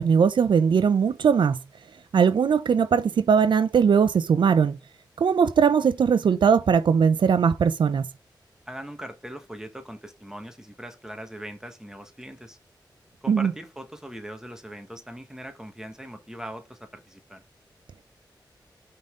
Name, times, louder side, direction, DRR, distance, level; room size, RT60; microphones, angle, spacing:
voice 1, 0.0-1.6 2.1-4.8 5.2-8.1 13.3-13.5, right 6 dB, 85° right, 0.6 m, -20 dB
voice 2, 8.7-12.6 13.2-17.4, right 1 dB, 5° right, 1.3 m, -40 dB
5.4 x 3.9 x 5.1 m
wide cardioid pair, 75°, 8 cm